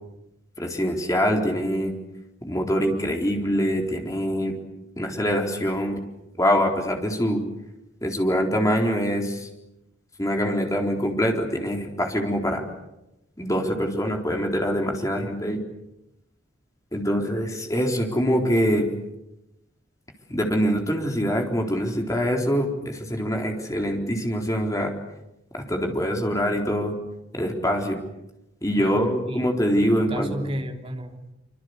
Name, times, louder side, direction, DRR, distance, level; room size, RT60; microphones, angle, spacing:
voice 1, 0.6-1.9 2.4-4.6 5.0-6.0 6.4-7.4 8.0-9.5 10.2-12.6 13.4-15.6 16.9-18.9 20.3-24.9 25.5-26.9 27.3-28.0 28.6-30.5, equal, 15° left, 2 dB, 4.1 m, -24 dB
voice 2, 28.8-31.3, equal, 30° right, 3 dB, 3.3 m, -34 dB
26.0 x 26.0 x 8.2 m, 0.92 s
head